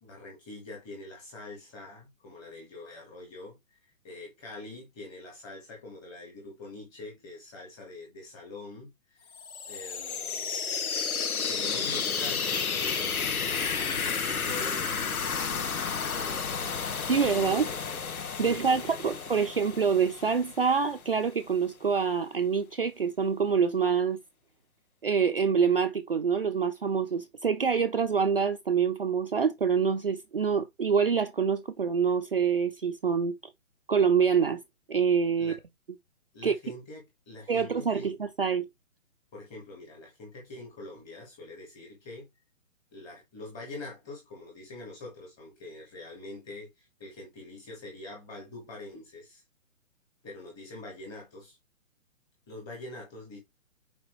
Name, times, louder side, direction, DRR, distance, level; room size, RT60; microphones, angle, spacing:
voice 1, 0.0-3.8 4.0-9.3 9.7-10.5 11.3-13.2 13.5-16.7 17.1-18.0 18.3-19.2 35.4-35.6 36.3-38.1 39.3-42.3 42.9-49.4 50.2-51.6 52.5-53.4, left 2 dB, 10° left, 1.6 m, -44 dB
sound 1, 9.3-21.0, left 6 dB, 90° left, 1.6 m, -32 dB
voice 2, 17.1-17.7 18.4-24.2 25.0-33.3 33.9-34.6 34.9-35.5 36.4-36.5 37.5-38.7, right 6 dB, 45° right, 0.6 m, -26 dB
5.9 x 5.0 x 3.2 m
hypercardioid pair, 175°, 42 cm